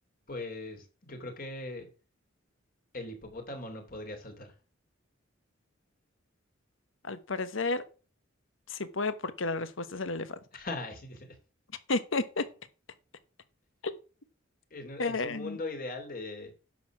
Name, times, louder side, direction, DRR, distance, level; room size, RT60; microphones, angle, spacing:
voice 1, 0.3-1.9 2.9-4.5 10.5-11.4 14.7-16.5, left 2 dB, 45° left, 2.8 m, -40 dB
voice 2, 7.0-7.8 8.7-10.4 11.9-12.4 13.8-13.9 15.0-15.6, left 3 dB, 70° left, 1.1 m, -31 dB
10.5 x 6.4 x 6.0 m
head